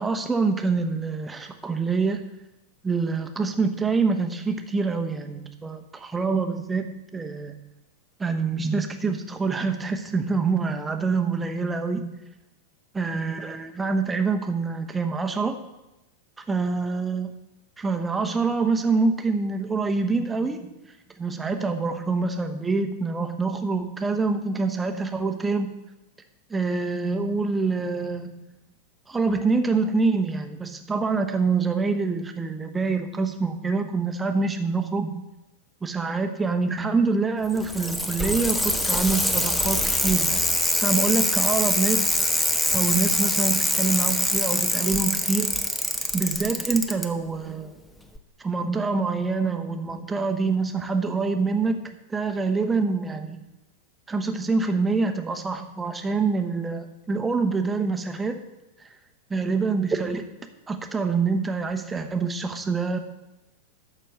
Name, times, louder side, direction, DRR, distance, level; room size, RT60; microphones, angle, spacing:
voice 1, 0.0-2.2 2.8-7.6 8.2-12.1 12.9-15.6 16.5-17.3 17.8-20.7 21.2-25.7 26.5-28.5 29.1-35.2 35.8-40.4 40.7-42.2 42.7-45.6 46.1-47.7 48.4-51.8 52.1-53.4 54.1-58.4 58.8-58.9 59.3-60.3 60.7-63.0, right 4 dB, 15° right, 6 dB, 1.1 m, -26 dB
Bicycle, 37.4-47.1 48.2-48.3, left 1 dB, 5° left, 1.0 m, -24 dB
12.5 x 4.5 x 7.9 m, 0.96 s
figure-of-eight pair, 90°, 0 cm